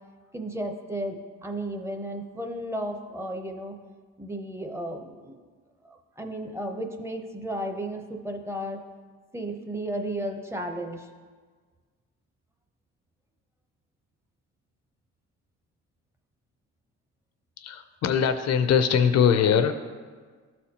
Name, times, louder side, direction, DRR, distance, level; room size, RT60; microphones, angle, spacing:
voice 1, 0.3-3.7 4.2-5.4 5.8-8.8 9.3-11.1, right 1 dB, 10° right, 4 dB, 0.7 m, -34 dB
voice 2, 17.6-19.7, left 7 dB, 60° left, 9 dB, 0.5 m, -22 dB
12.5 x 4.2 x 2.8 m, 1.5 s
cardioid pair, 90°, 30 cm